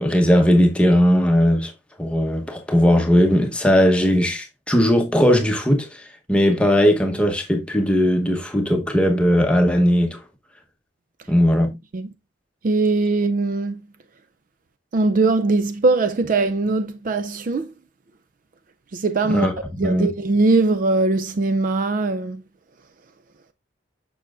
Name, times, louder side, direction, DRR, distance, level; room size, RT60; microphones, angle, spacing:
voice 1, 0.0-1.7 2.0-10.2 11.3-11.8 19.3-19.5 19.8-20.1, equal, 5° left, 0.9 m, -18 dB
voice 2, 12.6-13.8 14.9-17.7 18.9-19.5 19.8-22.4, right 3 dB, 45° right, 0.4 m, -21 dB
6.9 x 6.0 x 2.4 m
head